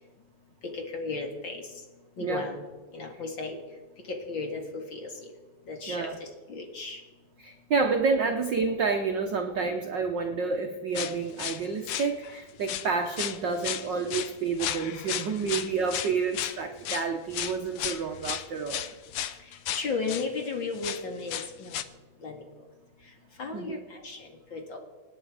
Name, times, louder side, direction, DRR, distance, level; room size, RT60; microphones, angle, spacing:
voice 1, 0.6-1.6 2.2-2.6 2.9-3.6 4.1-5.1 5.7-7.0 19.5-21.8 22.2-22.4 23.4-24.8, left 4 dB, 45° left, 3 dB, 2.4 m, -35 dB
voice 2, 5.9-6.2 7.4-18.9 23.5-23.8, right 4 dB, 75° right, 4 dB, 1.0 m, -29 dB
sound 1, 10.9-12.4 12.6-12.9 13.2-20.3 20.7-21.8, left 11 dB, 75° left, 1.3 m, -34 dB
25.5 x 9.7 x 5.0 m, 1.3 s
omnidirectional pair, 3.5 m